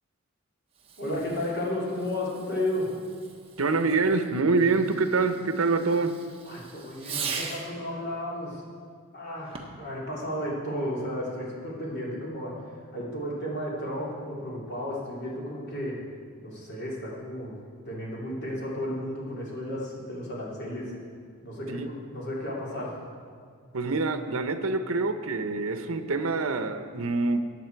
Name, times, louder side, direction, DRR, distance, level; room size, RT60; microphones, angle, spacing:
Fireworks, 0.7-7.8 9.4-9.9, right 5 dB, 25° right, 1.1 m, -41 dB
voice 1, 1.0-2.9 6.4-8.7 9.1-12.6 12.9-16.0 16.4-17.6 17.9-20.9 21.4-22.9, left 1 dB, 50° left, -5 dB, 2.9 m, -33 dB
voice 2, 3.6-6.2 21.7-21.9 23.7-27.4, right 3 dB, 75° right, 9 dB, 0.8 m, -25 dB
14.5 x 9.2 x 4.6 m, 2.1 s
head